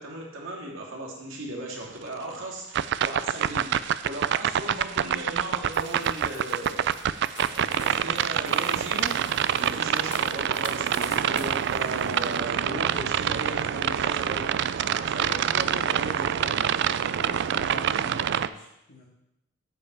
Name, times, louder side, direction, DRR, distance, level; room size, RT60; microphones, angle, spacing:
voice 1, 0.0-7.0 7.5-9.1 9.5-14.5 14.8-17.0, right 1 dB, 75° right, -2 dB, 2.6 m, -36 dB
sound 1, 2.7-18.5, right 9 dB, 60° right, 0.3 m, -26 dB
sound 2, 5.7-12.4, left 3 dB, 35° left, 2.9 m, -46 dB
voice 2, 17.1-19.0, left 1 dB, 55° left, -5 dB, 1.9 m, -43 dB
9.0 x 5.5 x 7.5 m, 0.85 s
head